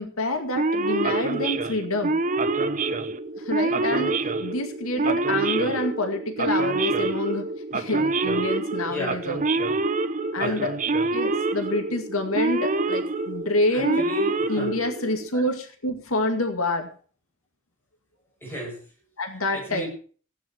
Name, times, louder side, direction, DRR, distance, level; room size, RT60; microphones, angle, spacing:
voice 1, 0.0-2.2 3.4-7.5 7.7-9.4 10.3-10.7 11.1-14.0 14.5-16.9 19.2-19.9, left 2 dB, 90° left, 6 dB, 2.2 m, -27 dB
Male speech man speaking / Siren, 0.6-15.3, right 3 dB, 40° right, 1.0 m, -26 dB
voice 2, 8.9-9.3 10.3-10.6 13.7-14.7 15.3-15.5 18.4-18.8 19.5-19.9, right 1 dB, 10° left, -1 dB, 7.9 m, -33 dB
16.5 x 9.6 x 6.0 m, 0.42 s
head